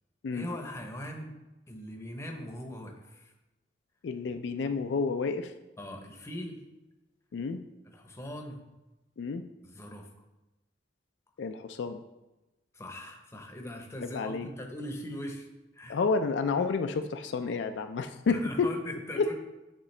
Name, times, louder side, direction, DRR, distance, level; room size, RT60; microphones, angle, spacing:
voice 1, 0.3-1.3 1.7-3.3 5.8-6.6 7.9-8.6 9.6-10.1 12.7-15.5 15.7-16.0 18.3-19.3, equal, 15° left, 3 dB, 0.7 m, -40 dB
voice 2, 4.0-5.5 7.3-7.6 9.2-9.4 11.4-12.0 14.0-14.5 15.9-18.7 19.2-19.3, left 4 dB, 75° left, 7 dB, 0.4 m, -30 dB
9.7 x 3.8 x 3.2 m, 1.0 s
head